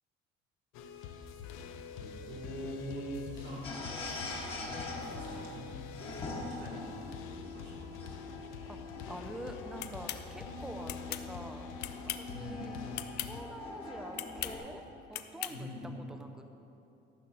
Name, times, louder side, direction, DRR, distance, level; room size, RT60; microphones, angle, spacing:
sound 1, 0.7-13.4, left 6 dB, 85° left, 0.8 m, -45 dB
voice 1, 1.9-3.9 4.5-4.9 5.1-8.2 12.3-12.7 15.5-15.9, equal, 75° right, -2 dB, 2.6 m, -44 dB
sound 2, 3.6-14.6, left 2 dB, 25° left, 1.3 m, -44 dB
voice 2, 8.7-11.7 12.2-12.8 13.2-14.8 15.1-15.7 16.1-16.5, right 1 dB, 5° right, 6 dB, 0.5 m, -46 dB
sound 3, 9.8-10.2 10.9-11.3 11.8-12.3 12.9-13.3 14.1-14.6 15.1-15.6, left 13 dB, 55° left, 0.5 m, -38 dB
14.0 x 6.1 x 6.0 m, 2.9 s
cardioid pair, 175°, 21 cm